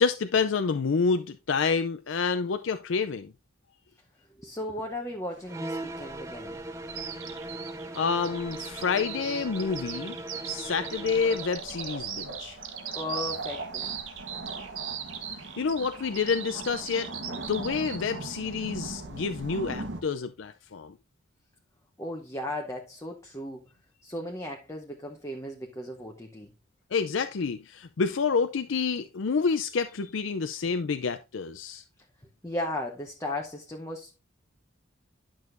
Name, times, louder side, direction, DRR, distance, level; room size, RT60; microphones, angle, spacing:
voice 1, 0.0-3.3 7.9-10.2 10.4-12.6 15.6-17.1 17.5-20.9 26.9-31.8, left 5 dB, 70° left, 0.5 m, -28 dB
voice 2, 4.4-6.6 12.9-14.0 22.0-23.6 24.0-26.5 32.4-34.1, left 1 dB, 15° left, 0.8 m, -36 dB
sound 1, 5.3-20.0, right 2 dB, 60° right, 1.2 m, -42 dB
sound 2, 5.5-11.6, right 1 dB, 15° right, 0.5 m, -39 dB
Bird vocalization bird call bird song, 6.9-18.0, right 9 dB, 80° right, 1.6 m, -39 dB
10.5 x 6.3 x 2.6 m
head